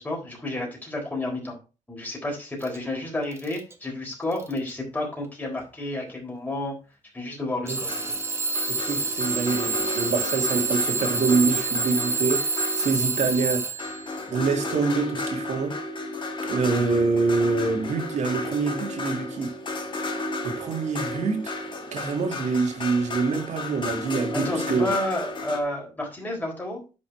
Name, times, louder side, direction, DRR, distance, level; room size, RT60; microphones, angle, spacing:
voice 1, 0.0-1.6 1.9-6.7 7.1-8.1 24.3-26.8, left 1 dB, 15° left, 3.9 m, -31 dB
Alarm / Clock, 2.6-2.8 3.3-3.7 4.3-4.7 5.6-5.7 7.7-14.1, right 3 dB, 20° right, 1.4 m, -28 dB
sound 1, 7.9-13.3 13.8-25.6, left 2 dB, 40° left, 1.8 m, -33 dB
voice 2, 8.7-13.8 14.3-15.7 16.4-19.5 20.4-21.5 21.9-24.9, right 4 dB, 65° right, 2.3 m, -25 dB
9.9 x 5.4 x 4.6 m
cardioid pair, 110°, 13 cm